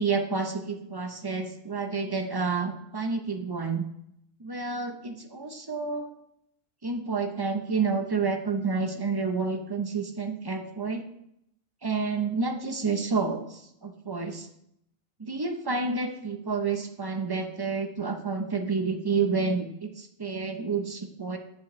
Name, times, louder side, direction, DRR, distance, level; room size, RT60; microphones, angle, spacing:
voice 1, 0.0-3.8 4.4-6.1 6.8-11.0 11.8-14.5 15.2-21.4, right 4 dB, 35° right, 6 dB, 0.4 m, -29 dB
9.4 x 7.6 x 3.1 m, 0.76 s
omnidirectional pair, 1.4 m